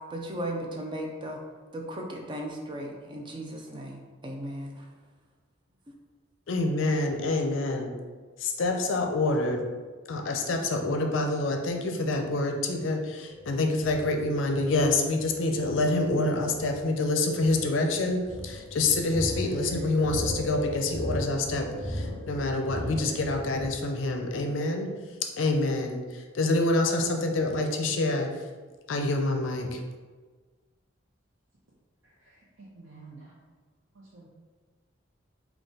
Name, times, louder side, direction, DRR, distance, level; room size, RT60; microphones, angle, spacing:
voice 1, 0.1-1.4 1.7-4.8, right 1 dB, 25° right, 0 dB, 0.5 m, -36 dB
voice 2, 6.5-7.9 8.4-9.6 10.1-24.9 25.2-28.5 28.9-29.8, left 2 dB, 75° left, 4 dB, 0.5 m, -27 dB
sound 1, 13.3-23.7, equal, 5° right, 1.3 m, -37 dB
voice 3, 32.0-33.4 33.9-34.3, right 3 dB, 70° right, -7 dB, 0.7 m, -50 dB
3.7 x 2.3 x 3.8 m, 1.4 s
head